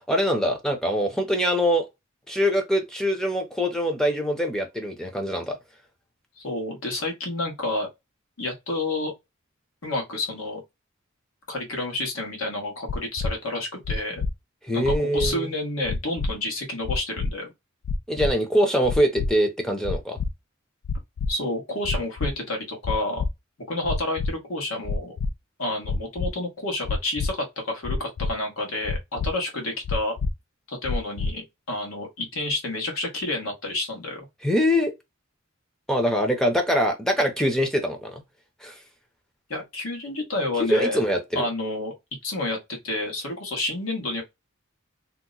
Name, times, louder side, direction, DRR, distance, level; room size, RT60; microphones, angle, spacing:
voice 1, 0.1-1.9 2.3-5.6 14.6-15.5 18.1-20.2 34.4-34.9 35.9-38.2 38.6-38.8 40.7-41.4, equal, 5° left, 0.5 m, -23 dB
voice 2, 6.4-7.9 8.4-9.1 9.8-10.6 11.5-14.2 14.7-17.5 21.3-23.2 23.7-25.1 25.6-30.1 30.7-34.3 39.5-41.0 41.3-41.9 42.2-44.2, left 2 dB, 85° left, 1.3 m, -29 dB
sound 1, 12.9-13.3 13.8-14.3 14.8-15.3 15.8-16.3 16.8-17.3 17.8-18.3 18.8-19.3 19.8-20.3 20.8-21.3 21.8-22.3 22.8-23.3 23.8-24.3 24.8-25.3 25.8-26.3 26.8-27.3 27.8-28.3 28.8-29.3 29.8-30.3 30.8-31.3, left 4 dB, 65° left, 0.3 m, -26 dB
2.8 x 2.1 x 3.7 m
head